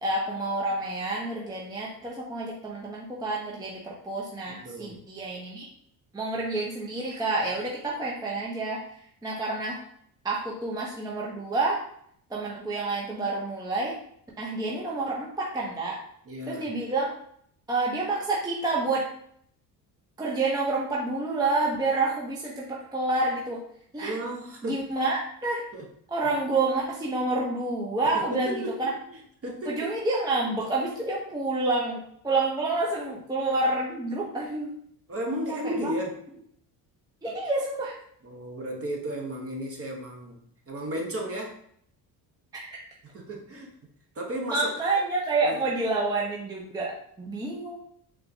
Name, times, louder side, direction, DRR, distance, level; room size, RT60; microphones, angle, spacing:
voice 1, 0.0-5.7 6.1-8.9 9.2-9.8 10.2-11.8 12.3-14.0 14.4-16.0 16.5-17.2 17.7-19.1 20.2-23.6 23.9-24.2 24.6-25.6 26.1-28.9 29.7-34.7 35.5-35.9 37.2-38.0 42.5-42.6 44.5-47.8, right 2 dB, 10° right, -3 dB, 0.6 m, -28 dB
voice 2, 4.5-5.0 16.3-16.7 24.0-24.8 25.7-25.8 28.0-29.2 29.4-30.0 35.1-36.2 38.2-40.4 40.7-41.6 43.0-43.7 44.1-44.8 45.4-45.6, equal, 30° right, 0 dB, 0.9 m, -34 dB
4.3 x 2.1 x 2.7 m, 0.66 s
supercardioid pair, 75°, 45 cm